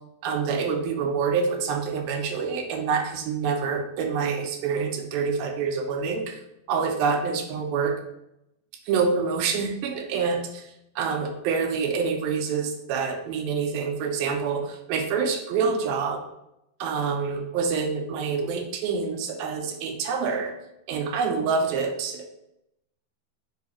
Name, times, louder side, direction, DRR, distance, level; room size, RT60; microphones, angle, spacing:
voice 1, 0.2-6.4 6.7-8.0 8.9-16.2 16.8-20.5 20.9-22.3, right 5 dB, 75° right, 4 dB, 2.4 m, -26 dB
7.4 x 3.7 x 4.2 m, 0.84 s
omnidirectional pair, 4.5 m